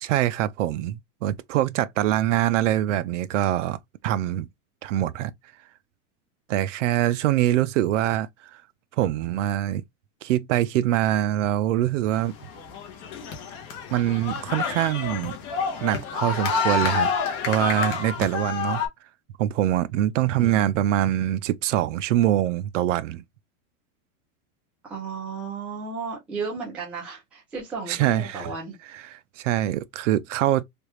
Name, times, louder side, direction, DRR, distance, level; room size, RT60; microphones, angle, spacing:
voice 1, 0.0-3.8 4.0-4.5 4.8-5.3 6.5-8.6 9.0-9.8 10.2-12.3 13.9-15.3 15.8-17.1 17.5-18.8 19.4-23.2 27.9-28.5 28.9-30.6, right 13 dB, 60° right, 0.5 m, -24 dB
sound 1, 12.2-18.9, left 5 dB, 30° left, 0.7 m, -28 dB
voice 2, 20.4-20.7 24.8-28.7, right 4 dB, 5° right, 0.4 m, -34 dB
3.4 x 2.3 x 2.9 m
supercardioid pair, 175°, 41 cm